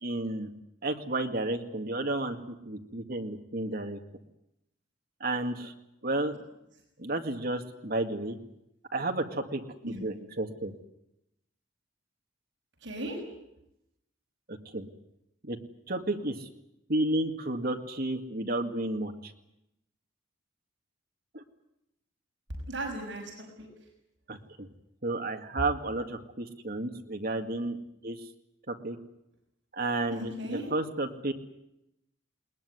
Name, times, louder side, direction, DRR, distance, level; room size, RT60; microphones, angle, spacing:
voice 1, 0.0-0.5 0.8-4.0 5.2-5.7 6.0-6.4 7.0-8.4 8.9-10.7 14.5-14.9 15.4-15.6 15.9-16.5 16.9-19.3 21.3-21.4 24.3-24.7 25.0-27.8 28.0-28.2 28.7-29.0 29.7-31.3, right 2 dB, 50° right, 4 dB, 2.1 m, -32 dB
voice 2, 12.8-13.2 22.7-23.7 30.1-30.7, right 1 dB, 65° right, 0 dB, 6.2 m, -36 dB
21.0 x 20.0 x 9.7 m, 0.86 s
head